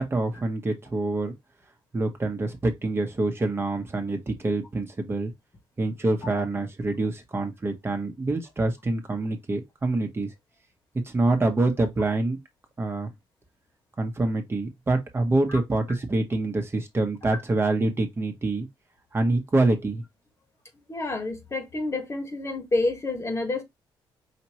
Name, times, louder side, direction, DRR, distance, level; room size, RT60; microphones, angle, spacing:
voice 1, 0.0-1.3 1.9-5.3 5.8-10.3 11.0-12.4 12.8-13.1 14.0-18.7 19.1-20.0, right 2 dB, 25° right, 1.1 m, -26 dB
voice 2, 20.9-23.6, left 2 dB, 30° left, 1.4 m, -29 dB
5.1 x 2.9 x 2.9 m
cardioid pair, 85°, 9 cm